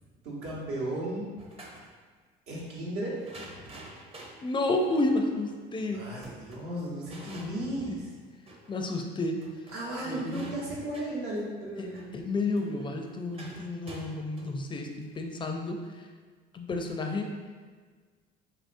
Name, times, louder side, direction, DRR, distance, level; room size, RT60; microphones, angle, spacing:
voice 1, 0.2-1.3 2.5-3.2 3.5-3.9 5.9-8.1 9.7-12.0, right 1 dB, 80° right, -5 dB, 1.0 m, -35 dB
sound 1, 1.4-1.9 3.2-8.8 9.1-9.2 9.4-15.8, right 1 dB, 25° right, 0.6 m, -49 dB
voice 2, 4.4-6.1 7.3-8.0 8.7-9.4 10.1-10.5 11.8-11.9 12.1-15.8 16.5-17.3, left 2 dB, 25° left, 3 dB, 0.4 m, -31 dB
3.0 x 2.7 x 2.5 m, 1.5 s
supercardioid pair, 70°, 21 cm